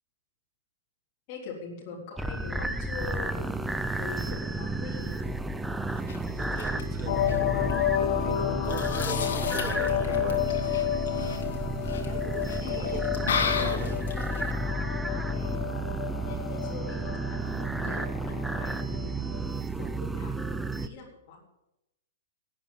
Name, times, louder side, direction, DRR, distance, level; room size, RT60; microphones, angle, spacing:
voice 1, 1.3-3.7 4.0-5.2 12.0-12.2 12.6-13.1 13.7-13.9 14.6-14.9 15.3-15.6 16.2-19.2 19.8-20.4 20.8-21.4, left 5 dB, 30° left, -4 dB, 3.7 m, -42 dB
sound 1, 2.2-20.9, right 2 dB, 5° right, 0.5 m, -32 dB
sound 2, 5.9-14.5, left 6 dB, 70° left, 3.1 m, -36 dB
voice 2, 6.3-10.6 12.1-12.4 12.8-14.0 19.8-19.9, right 5 dB, 20° right, 6 dB, 2.0 m, -40 dB
sound 3, 7.1-19.6, left 12 dB, 45° left, 1.3 m, -31 dB
17.5 x 9.2 x 7.3 m, 0.89 s
hypercardioid pair, 175°, 0 cm